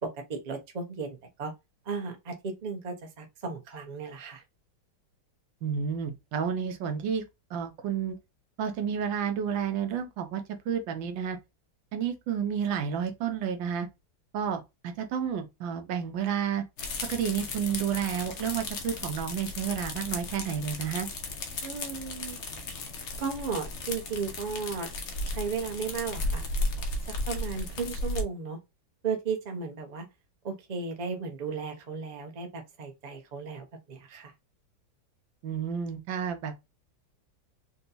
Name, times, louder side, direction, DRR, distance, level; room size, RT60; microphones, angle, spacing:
voice 1, 0.0-1.5 1.8-4.4 21.6-22.4 23.2-24.9 25.3-26.4 27.0-28.6 29.0-30.1 30.4-34.3, right 5 dB, 40° right, 0.6 m, -35 dB
voice 2, 5.6-7.2 7.5-8.2 8.6-11.4 11.9-13.9 14.3-16.6 17.1-21.1 35.4-36.5, right 8 dB, 85° right, 1.5 m, -31 dB
sound 1, 16.8-28.2, left 2 dB, 65° left, 0.7 m, -35 dB
4.0 x 2.3 x 2.7 m
omnidirectional pair, 2.0 m